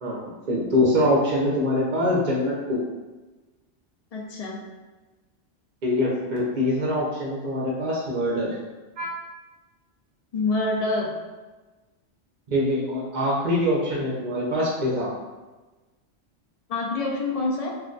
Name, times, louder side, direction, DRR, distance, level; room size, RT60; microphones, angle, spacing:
voice 1, 0.0-2.8 5.8-8.6 9.0-9.1 12.5-15.1, left 1 dB, 50° right, -5 dB, 0.6 m, -24 dB
voice 2, 4.1-4.6 10.3-11.1 16.7-17.8, left 2 dB, 60° left, -1 dB, 0.4 m, -26 dB
2.5 x 2.2 x 3.8 m, 1.2 s
omnidirectional pair, 1.2 m